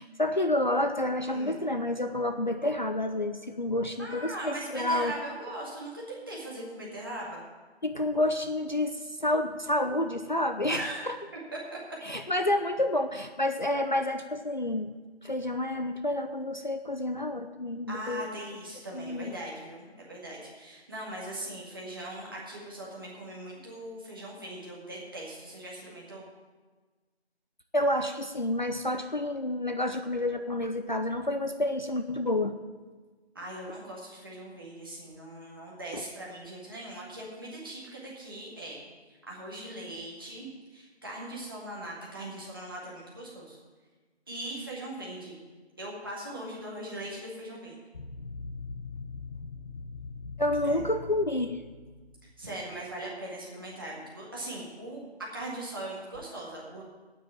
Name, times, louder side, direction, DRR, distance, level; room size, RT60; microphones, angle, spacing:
voice 1, 0.0-5.1 7.8-11.2 12.0-18.3 18.9-19.3 27.7-32.6 35.9-36.0 50.4-51.6, left 1 dB, 45° left, 8 dB, 0.5 m, -29 dB
voice 2, 4.0-7.4 10.7-11.0 11.5-11.8 17.9-26.2 33.4-38.8 39.3-43.6 44.3-45.4 45.8-47.8 50.6-50.8 52.4-55.0 55.3-56.8, right 1 dB, 20° right, -5 dB, 1.9 m, -40 dB
sound 1, 47.9-52.6, left 4 dB, 60° left, 1.1 m, -42 dB
9.2 x 8.4 x 8.9 m, 1.3 s
figure-of-eight pair, 175°, 33 cm